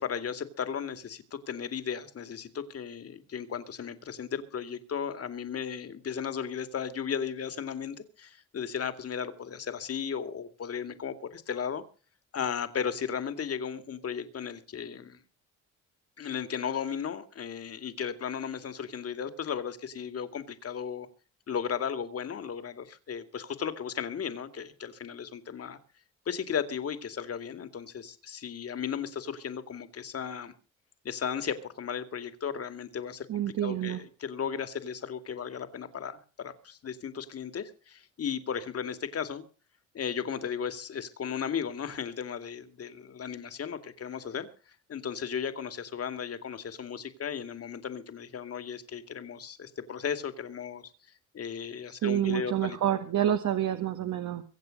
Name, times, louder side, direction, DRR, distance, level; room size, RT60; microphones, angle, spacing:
voice 1, 0.0-11.8 12.3-15.2 16.2-21.1 21.5-25.8 26.3-30.5 31.0-39.4 39.9-44.5 44.9-50.9 51.3-52.8, left 7 dB, 50° left, 10 dB, 2.5 m, -35 dB
voice 2, 33.3-34.0 51.9-54.4, right 11 dB, 70° right, 7 dB, 1.8 m, -28 dB
24.0 x 8.1 x 5.4 m, 0.37 s
cardioid pair, 90°, 30 cm